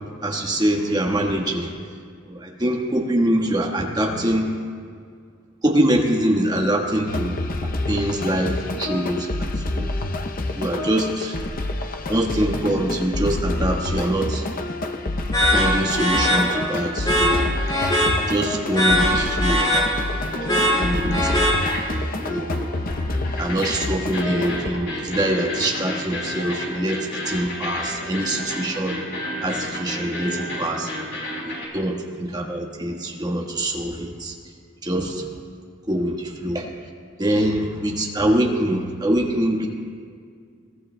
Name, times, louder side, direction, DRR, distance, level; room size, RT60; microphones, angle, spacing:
voice 1, 0.2-1.7 2.2-4.6 5.6-7.4 7.9-9.3 9.7-9.9 10.6-11.4 12.1-14.4 15.5-17.6 18.3-19.6 20.4-21.2 22.3-22.7 23.4-29.0 29.4-30.9 31.4-34.3 34.8-35.2 35.9-36.7 37.2-39.7, right 1 dB, 20° right, 0 dB, 1.3 m, -24 dB
sound 1, 7.1-24.7, left 2 dB, 45° left, 0.6 m, -27 dB
sound 2, 15.3-22.0, equal, 20° left, 2.4 m, -22 dB
sound 3, 17.6-19.8 20.0-31.6, left 1 dB, 60° left, 3.6 m, -33 dB
22.0 x 17.5 x 2.2 m, 2.1 s
head